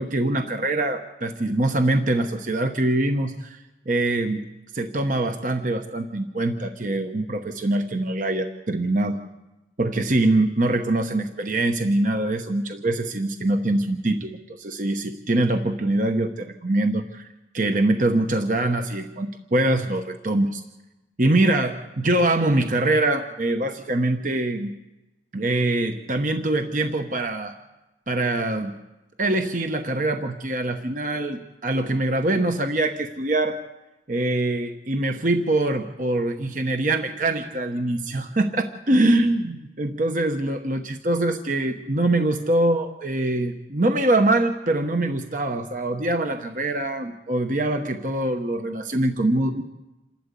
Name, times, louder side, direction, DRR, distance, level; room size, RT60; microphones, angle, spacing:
voice 1, 0.0-3.6 3.9-4.5 4.7-9.2 9.8-17.3 17.5-20.6 21.2-24.7 25.3-27.5 28.1-28.7 29.2-33.6 34.1-49.6, right 2 dB, 45° right, 6 dB, 1.0 m, -23 dB
28.0 x 12.0 x 8.3 m, 1.0 s
head